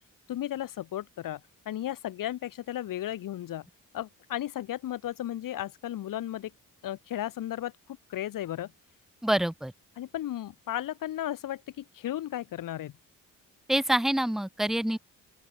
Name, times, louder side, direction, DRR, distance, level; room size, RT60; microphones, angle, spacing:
voice 1, 0.3-3.7 3.9-6.5 6.8-8.7 10.0-12.9, left 12 dB, 85° left, 3.1 m, -35 dB
voice 2, 9.2-9.7 13.7-15.0, right 1 dB, ahead, 0.8 m, -26 dB
open air
cardioid pair, 100°, 32 cm